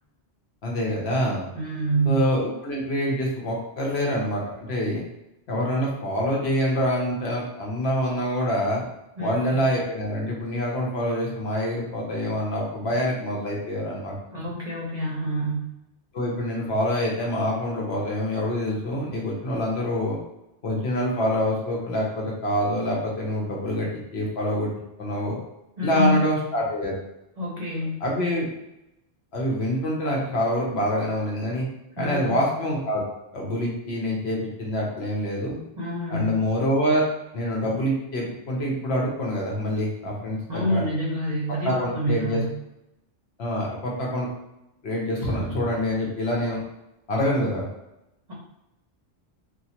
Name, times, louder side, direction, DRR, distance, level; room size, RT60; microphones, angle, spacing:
voice 1, 0.6-1.5 2.0-5.0 5.5-8.8 9.2-14.2 16.1-20.2 20.6-24.7 25.0-25.4 25.8-26.9 28.0-28.4 29.3-31.7 32.0-33.0 33.3-35.6 36.1-37.0 37.3-40.8 41.6-42.4 43.4-44.3 44.8-46.6 47.1-47.7, equal, 65° left, -2 dB, 1.0 m, -26 dB
voice 2, 1.5-2.2 9.2-9.5 14.3-15.7 25.8-26.2 27.4-28.0 32.0-32.3 35.8-36.3 40.5-42.6, equal, 40° right, -5 dB, 0.7 m, -27 dB
3.0 x 2.4 x 2.8 m, 0.89 s
omnidirectional pair, 1.2 m